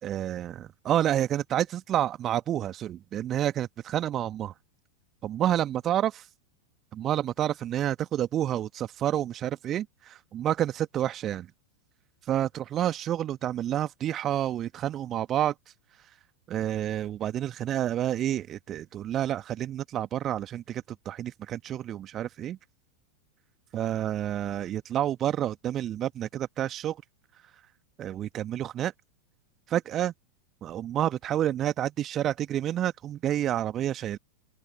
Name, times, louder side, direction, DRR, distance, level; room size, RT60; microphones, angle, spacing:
voice 1, 0.0-4.5 5.2-6.2 6.9-11.5 12.2-15.5 16.5-22.6 23.7-27.0 28.0-28.9 29.7-30.1 30.6-34.2, right 11 dB, 30° right, 1.4 m, -29 dB
open air
figure-of-eight pair, 90°, 0 cm